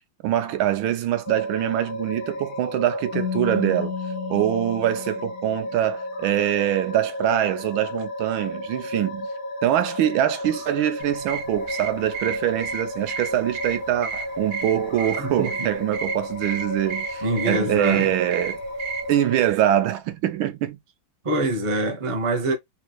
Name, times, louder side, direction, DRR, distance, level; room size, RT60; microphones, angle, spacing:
voice 1, 0.2-3.9 4.3-9.3 9.6-18.6 19.1-20.8, right 12 dB, 85° right, 1.5 m, -24 dB
sound 1, 1.2-19.5, left 1 dB, 40° left, 1.0 m, -33 dB
Keyboard (musical), 3.1-5.9, left 7 dB, 70° left, 0.9 m, -32 dB
sound 2, 11.0-19.1, right 6 dB, 65° right, 1.5 m, -34 dB
voice 2, 15.2-15.7 17.2-18.1 21.2-22.5, right 2 dB, 45° right, 0.4 m, -25 dB
4.1 x 3.0 x 2.3 m
omnidirectional pair, 2.2 m